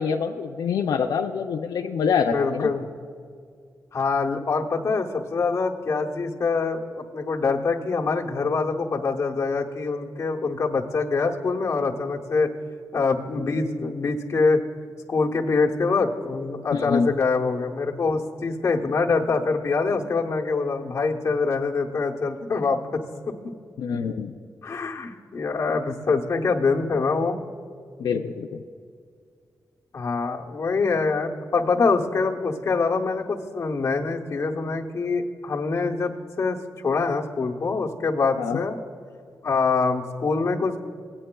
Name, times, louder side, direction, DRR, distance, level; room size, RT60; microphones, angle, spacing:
voice 1, 0.0-2.7 16.7-17.1 23.8-24.3 28.0-28.6 38.4-38.6, left 6 dB, 85° left, 4 dB, 0.4 m, -25 dB
voice 2, 2.3-2.9 3.9-12.5 12.9-14.6 15.1-23.0 24.6-27.4 29.9-36.1 36.4-36.6 36.8-38.8 39.4-40.8, left 4 dB, 45° left, -2 dB, 0.8 m, -24 dB
18.0 x 8.7 x 2.2 m, 2.1 s
wide cardioid pair, 125°, 7 cm